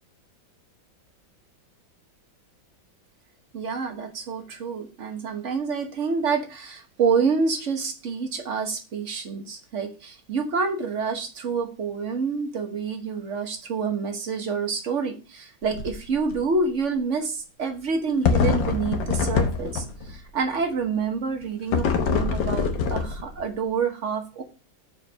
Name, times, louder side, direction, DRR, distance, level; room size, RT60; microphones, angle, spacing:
voice 1, 3.5-24.4, right 5 dB, 45° right, 5 dB, 1.3 m, -27 dB
sound 1, 15.6-16.0 16.3-16.4 18.3-20.1 21.7-23.5, left 6 dB, 70° left, 1.6 m, -24 dB
5.6 x 4.6 x 6.2 m, 0.32 s
omnidirectional pair, 2.2 m